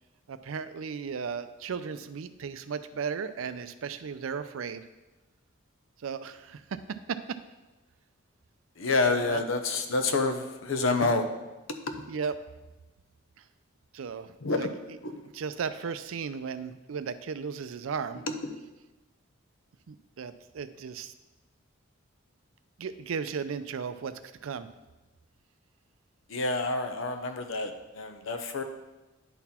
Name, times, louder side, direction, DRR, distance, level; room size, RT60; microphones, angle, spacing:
voice 1, 0.3-4.9 6.0-7.4 9.1-9.4 12.1-12.3 13.9-15.0 15.3-18.2 19.9-21.1 22.8-24.1 24.4-24.7, right 6 dB, 85° right, 12 dB, 0.4 m, -35 dB
voice 2, 8.8-11.3 14.4-14.7 15.0-15.2 26.3-28.6, left 3 dB, 75° left, 7 dB, 0.7 m, -28 dB
9.9 x 4.0 x 4.3 m, 1.1 s
head